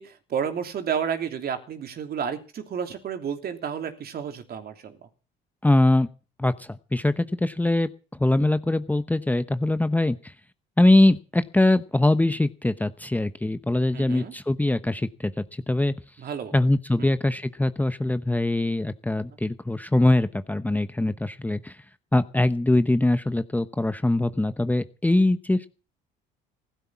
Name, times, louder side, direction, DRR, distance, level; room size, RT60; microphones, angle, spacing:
voice 1, 0.0-5.0 13.9-14.3 16.2-16.5 17.0-17.1, right 7 dB, 50° right, 6 dB, 3.0 m, -31 dB
voice 2, 5.6-6.1 6.4-7.9 8.2-10.3 10.8-15.3 15.7-15.9 16.5-21.8 22.1-25.7, left 2 dB, 10° left, 12 dB, 0.9 m, -22 dB
16.0 x 12.5 x 6.0 m, 0.36 s
supercardioid pair, 90°, 20 cm